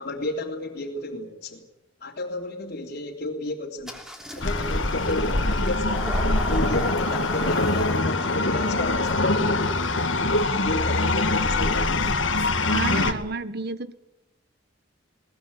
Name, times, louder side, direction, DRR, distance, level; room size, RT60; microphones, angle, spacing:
voice 1, 0.0-1.6 2.0-4.0 4.3-6.0 6.3-9.7 10.5-12.1, left 2 dB, 50° left, -5 dB, 3.3 m, -32 dB
Engine starting, 3.8-11.2, equal, 5° right, 3.2 m, -39 dB
sound 1, 4.4-13.1, left 2 dB, 70° left, 2.1 m, -23 dB
voice 2, 12.7-13.9, right 3 dB, 60° right, 13 dB, 1.5 m, -30 dB
21.5 x 19.0 x 9.7 m, 0.90 s
head